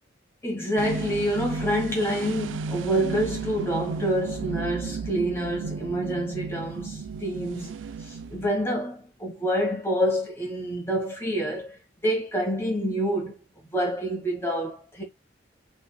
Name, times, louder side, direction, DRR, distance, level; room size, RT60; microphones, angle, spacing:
voice 1, 0.4-13.4 13.7-15.0, equal, 15° left, 2.1 m, -27 dB
sound 1, 0.8-8.7, right 5 dB, 90° right, 0.4 m, -34 dB
5.4 x 4.2 x 2.3 m
head